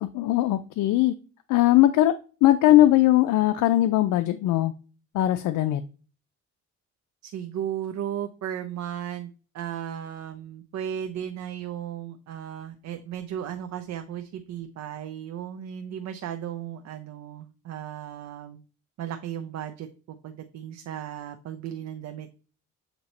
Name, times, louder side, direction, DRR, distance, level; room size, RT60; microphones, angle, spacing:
voice 1, 0.0-1.1 1.5-2.2 2.4-4.7 5.1-5.8, left 14 dB, 80° left, 9 dB, 0.5 m, -20 dB
voice 2, 7.2-18.6 19.0-22.3, right 10 dB, 65° right, 7 dB, 0.7 m, -35 dB
7.8 x 2.9 x 4.1 m, 0.36 s
cardioid pair, 90°, 30 cm